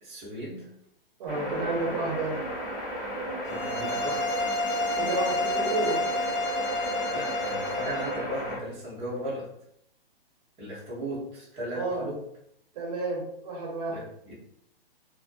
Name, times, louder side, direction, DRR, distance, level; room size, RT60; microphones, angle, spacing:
voice 1, 0.0-0.7 3.4-4.4 7.1-9.5 10.6-12.2 13.9-14.3, equal, 20° right, -6 dB, 0.8 m, -36 dB
voice 2, 1.2-2.4 5.0-6.0 11.7-12.0 12.7-14.0, right 2 dB, 45° right, -2 dB, 1.0 m, -31 dB
sound 1, 1.3-8.6, equal, 10° left, 1.1 m, -34 dB
sound 2, 3.4-8.2, left 1 dB, 50° left, 0.6 m, -30 dB
2.4 x 2.1 x 2.5 m, 0.73 s
hypercardioid pair, 140°, 30 cm